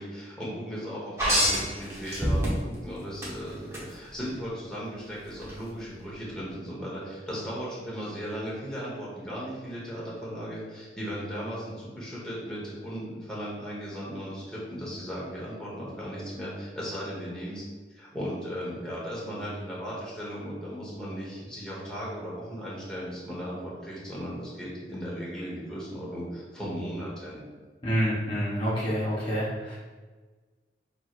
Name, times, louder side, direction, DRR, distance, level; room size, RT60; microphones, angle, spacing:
voice 1, 0.0-17.6 17.9-27.4, equal, 5° left, -7 dB, 1.2 m, -36 dB
sound 1, 1.2-2.8 3.2-3.8 5.4-5.5, equal, 15° right, 1.0 m, -25 dB
voice 2, 27.8-29.7, equal, 30° left, -10 dB, 0.9 m, -27 dB
5.9 x 3.1 x 2.4 m, 1.4 s
head